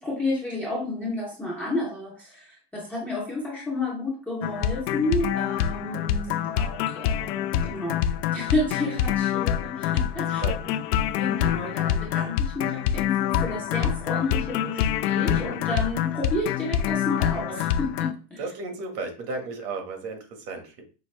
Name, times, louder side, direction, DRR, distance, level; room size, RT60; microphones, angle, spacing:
voice 1, 0.0-10.4 11.2-18.4, left 2 dB, 5° left, -5 dB, 0.4 m, -31 dB
sound 1, 4.4-18.1, left 10 dB, 90° left, 0.6 m, -26 dB
voice 2, 10.4-10.8 18.4-20.8, right 3 dB, 80° right, 4 dB, 1.5 m, -34 dB
5.7 x 2.6 x 3.1 m, 0.35 s
supercardioid pair, 155°, 47 cm